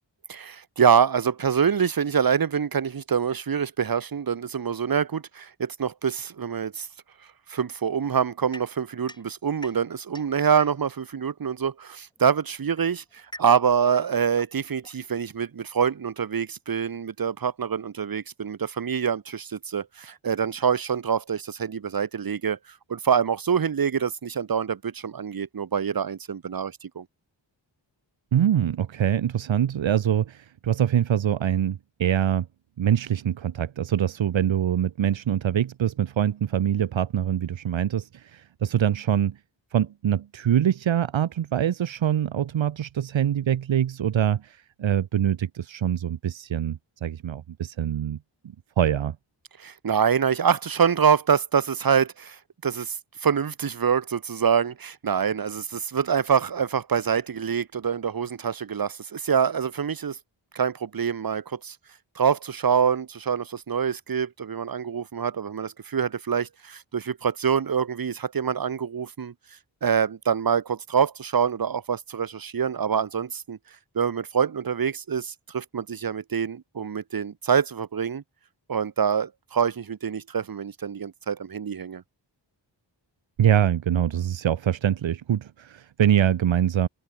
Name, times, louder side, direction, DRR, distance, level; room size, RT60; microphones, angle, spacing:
voice 1, 0.3-6.9 7.5-22.6 22.9-27.0 49.6-53.0 53.2-60.2 60.5-61.8 62.2-69.3 69.8-73.6 73.9-78.2 78.7-82.0, right 7 dB, 50° right, 0.9 m, -25 dB
sound 1, 8.5-11.1 12.1-15.5, left 1 dB, 10° left, 3.4 m, -47 dB
voice 2, 28.3-32.5 32.8-39.4 39.7-48.2 48.8-49.2 83.4-86.9, right 10 dB, 75° right, 0.7 m, -24 dB
wide cardioid pair, 80°, 46 cm